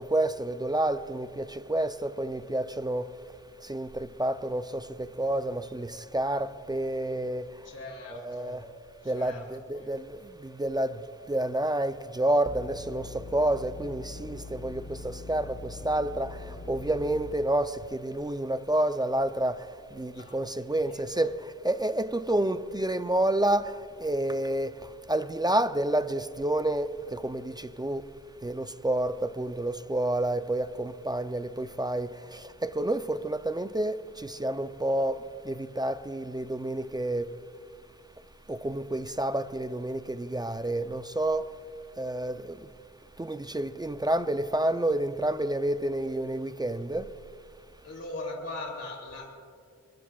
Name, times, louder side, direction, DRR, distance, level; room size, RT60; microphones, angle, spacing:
voice 1, 0.0-3.1 3.6-7.5 8.1-8.6 9.1-11.0 11.3-19.6 19.9-21.3 21.6-24.7 25.1-28.1 28.4-37.3 38.5-41.5 42.0-42.6 43.2-47.1, right 1 dB, 15° right, 11 dB, 0.4 m, -29 dB
voice 2, 7.6-8.6 9.0-9.4 9.7-9.9 20.1-20.3 20.8-21.3 47.8-49.3, left 2 dB, 55° left, -1 dB, 3.0 m, -40 dB
sound 1, 12.5-17.3, left 3 dB, 25° left, 1.0 m, -42 dB
22.5 x 22.0 x 2.3 m, 2.3 s
cardioid pair, 85°, 29 cm